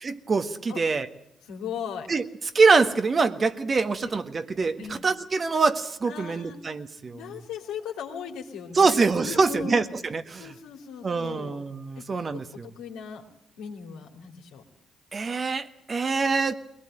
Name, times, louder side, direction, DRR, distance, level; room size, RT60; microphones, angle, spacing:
voice 1, 0.0-1.1 2.1-2.2 2.6-7.2 8.8-10.5 11.0-12.7 15.1-16.5, right 4 dB, 45° right, 9 dB, 1.6 m, -24 dB
voice 2, 1.4-2.1 4.0-4.1 4.8-5.0 6.1-6.6 7.1-10.0 10.4-11.6 12.0-12.1 12.3-13.3 13.6-14.6, left 7 dB, 80° left, 2 dB, 3.0 m, -38 dB
21.5 x 18.5 x 9.0 m, 0.73 s
supercardioid pair, 50°, 0 cm